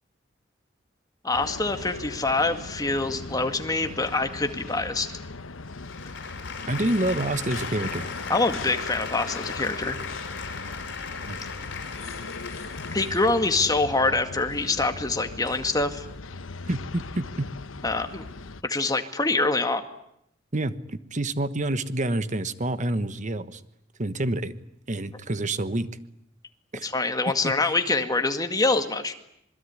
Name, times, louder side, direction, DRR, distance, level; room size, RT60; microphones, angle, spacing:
voice 1, 1.2-5.1 8.3-10.0 12.9-16.1 17.8-18.3 18.6-19.8 26.8-29.1, left 3 dB, 20° left, 7 dB, 2.1 m, -25 dB
sound 1, 1.3-18.6, left 3 dB, 85° left, 1.0 m, -39 dB
sound 2, 5.6-13.7, left 5 dB, 60° left, 5.1 m, -37 dB
voice 2, 6.7-8.0 11.3-11.4 16.7-17.5 20.5-23.6 24.0-24.5 24.9-25.9 26.7-26.9 27.3-27.5, right 1 dB, 40° right, 13 dB, 1.2 m, -28 dB
26.5 x 21.5 x 9.7 m, 0.74 s
head